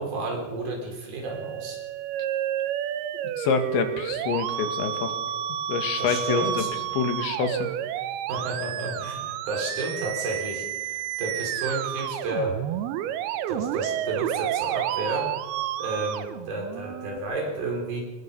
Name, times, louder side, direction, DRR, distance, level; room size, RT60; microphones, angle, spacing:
voice 1, 0.0-1.8 6.0-6.7 8.3-12.6 13.5-15.3 15.8-18.0, right 2 dB, 55° right, 1 dB, 5.6 m, -31 dB
Musical instrument, 1.3-17.2, right 11 dB, 75° right, 2.4 m, -30 dB
voice 2, 3.4-5.2 5.7-6.6 7.0-7.7, left 6 dB, 75° left, 6 dB, 4.2 m, -26 dB
27.0 x 20.0 x 5.5 m, 1.3 s
omnidirectional pair, 5.2 m